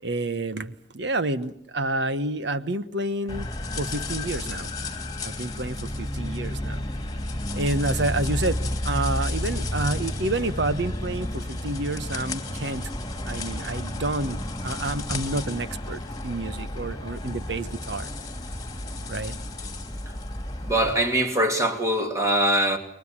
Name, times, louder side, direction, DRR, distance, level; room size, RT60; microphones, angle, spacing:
voice 1, 0.0-3.5 3.8-4.7 5.2-6.8 7.5-8.6 8.8-12.9 13.2-18.1 19.1-19.4, right 2 dB, 65° right, 1.3 m, -29 dB
sound 1, 3.3-20.9, left 1 dB, 20° left, 2.7 m, -31 dB
voice 2, 20.6-22.8, right 1 dB, 15° right, 2.6 m, -22 dB
30.0 x 22.5 x 7.4 m
head